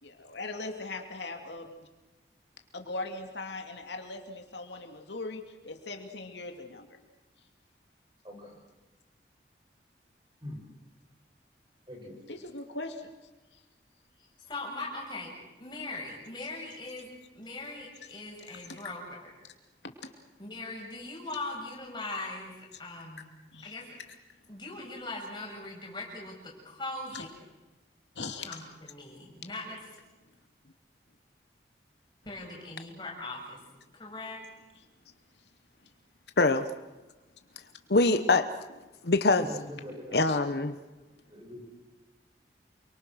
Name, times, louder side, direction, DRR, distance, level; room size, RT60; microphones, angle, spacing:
voice 1, 0.0-1.9 2.7-6.9 12.3-13.1 18.7-18.8 19.8-20.1 23.5-23.7 27.1-27.2 28.1-28.7 40.3-40.4, left 3 dB, 90° left, 5 dB, 2.8 m, -40 dB
voice 2, 11.9-12.2 39.4-40.2 41.3-41.6, left 1 dB, 25° right, 0 dB, 7.5 m, -42 dB
voice 3, 14.5-15.3 15.6-19.3 20.4-23.3 23.6-23.9 24.5-27.3 28.2-29.8 32.3-33.6 33.9-34.4, left 2 dB, 25° left, -2 dB, 7.3 m, -40 dB
voice 4, 37.9-38.5 39.0-39.5 40.1-40.7, left 3 dB, 70° left, 9 dB, 1.0 m, -23 dB
28.5 x 24.0 x 6.4 m, 1.1 s
head